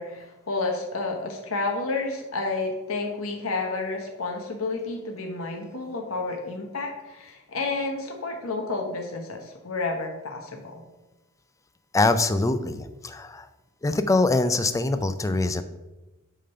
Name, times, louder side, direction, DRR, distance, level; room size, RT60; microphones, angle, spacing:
voice 1, 0.0-10.8, left 3 dB, 70° left, 2 dB, 1.1 m, -30 dB
voice 2, 11.9-13.5 13.8-15.6, left 2 dB, 15° left, 10 dB, 0.4 m, -23 dB
8.4 x 3.7 x 5.6 m, 1.1 s
head